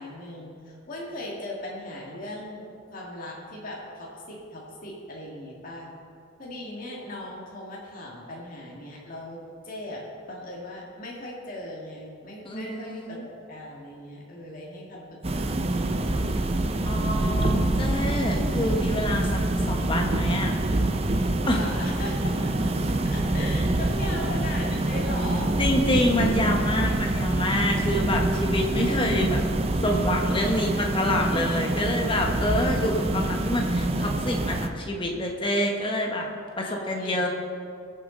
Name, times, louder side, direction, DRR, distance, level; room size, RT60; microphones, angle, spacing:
voice 1, 0.0-5.9 6.4-16.3 21.5-22.7 23.0-25.6 36.6-37.3, left 1 dB, 40° left, -4 dB, 2.1 m, -38 dB
voice 2, 12.4-13.2 16.8-19.4 19.7-20.5 21.5-21.6 25.6-29.4 29.8-36.3 36.6-37.3, left 1 dB, 25° left, 1 dB, 1.4 m, -27 dB
sound 1, 15.2-34.7, right 1 dB, 30° right, 0.6 m, -26 dB
21.5 x 7.3 x 4.0 m, 2.4 s
head